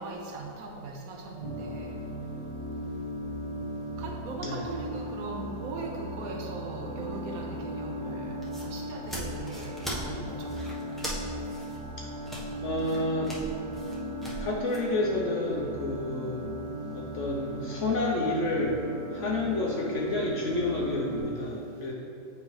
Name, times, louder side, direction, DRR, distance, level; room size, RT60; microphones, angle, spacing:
voice 1, 0.0-2.0 4.0-10.6, right 3 dB, 65° right, 1 dB, 1.0 m, -39 dB
sound 1, 1.4-21.2, equal, 20° left, 1.2 m, -37 dB
sound 2, 8.4-14.8, right 1 dB, ahead, 0.7 m, -40 dB
voice 2, 12.6-13.4 14.4-16.5 16.9-18.8 19.1-21.9, left 2 dB, 60° left, -2 dB, 0.8 m, -29 dB
8.3 x 4.8 x 3.1 m, 2.6 s
omnidirectional pair, 1.8 m